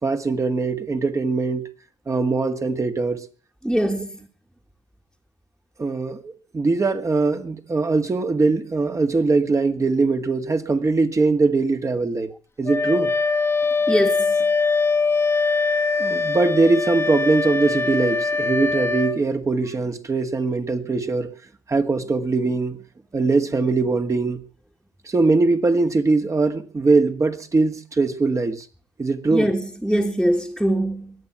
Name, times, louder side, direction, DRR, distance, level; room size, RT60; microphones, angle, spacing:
voice 1, 0.0-1.7 2.1-3.2 3.8-4.0 5.8-12.3 12.6-13.1 16.0-21.3 21.7-22.8 23.1-24.4 25.1-28.7 29.0-29.5, right 3 dB, 30° right, 2.0 m, -21 dB
voice 2, 3.6-4.1 13.9-14.4 29.3-31.1, equal, ahead, 1.9 m, -22 dB
Wind instrument woodwind instrument, 12.7-19.2, left 4 dB, 20° left, 1.4 m, -22 dB
22.5 x 8.8 x 6.0 m
hypercardioid pair, 55°, 11 cm